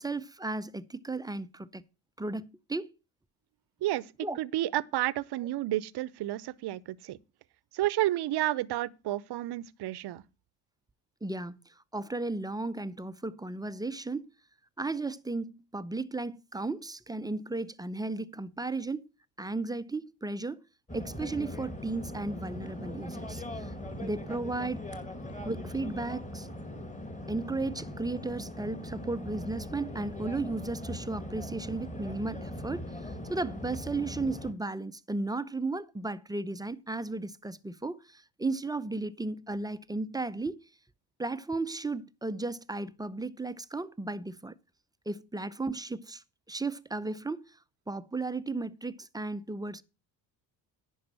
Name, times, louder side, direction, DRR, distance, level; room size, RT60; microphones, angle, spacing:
voice 1, 0.0-1.8 2.2-2.9 4.2-4.4 11.2-11.6 11.9-14.3 14.8-19.0 19.4-20.6 20.9-24.8 25.4-26.5 27.3-40.6 41.2-44.5 45.1-47.6 47.9-49.8, right 3 dB, 10° right, 0.6 m, -35 dB
voice 2, 3.8-4.1 4.4-7.2 7.7-10.2, right 15 dB, 50° right, 0.8 m, -31 dB
sound 1, 20.9-34.5, left 1 dB, 15° left, 2.2 m, -40 dB
10.5 x 5.5 x 7.5 m
supercardioid pair, 70°, 50 cm